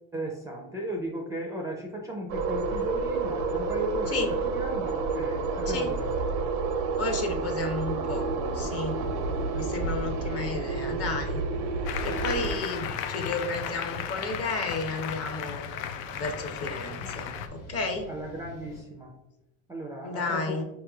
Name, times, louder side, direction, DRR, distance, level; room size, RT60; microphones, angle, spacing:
voice 1, 0.1-4.2 4.4-6.5 9.5-10.5 18.1-19.1 19.7-20.6, right 1 dB, 10° right, 0 dB, 0.4 m, -36 dB
sound 1, 2.3-12.6, right 4 dB, 85° right, 0.6 m, -30 dB
voice 2, 7.0-9.0 9.5-11.4 12.0-15.7 16.1-18.1 20.0-20.6, left 3 dB, 35° left, 4 dB, 0.7 m, -32 dB
sound 2, 8.2-18.8, left 1 dB, 70° left, 1.5 m, -48 dB
Applause, 11.9-17.5, left 8 dB, 85° left, 0.5 m, -35 dB
4.6 x 3.0 x 2.3 m, 0.95 s
supercardioid pair, 110°, 41 cm